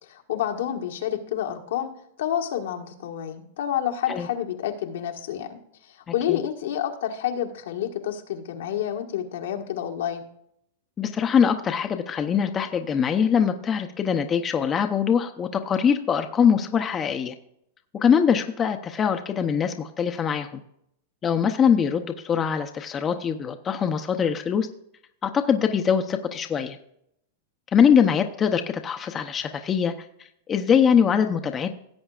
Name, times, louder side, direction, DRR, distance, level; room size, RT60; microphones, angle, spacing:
voice 1, 0.0-1.9 2.2-10.2 28.0-28.1, left 10 dB, 75° left, 3 dB, 1.5 m, -29 dB
voice 2, 11.0-17.3 17.9-20.6 21.2-24.7 25.2-26.8 27.7-29.9 30.5-31.7, left 7 dB, 20° left, 6 dB, 0.7 m, -22 dB
16.5 x 7.9 x 2.4 m, 0.72 s
supercardioid pair, 140°, 0 cm